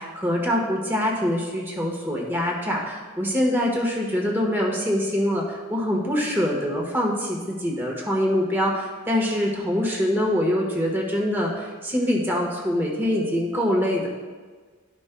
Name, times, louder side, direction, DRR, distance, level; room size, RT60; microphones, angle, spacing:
voice 1, 0.0-14.1, equal, 10° right, -2 dB, 1.3 m, -24 dB
13.0 x 5.3 x 2.2 m, 1.5 s
head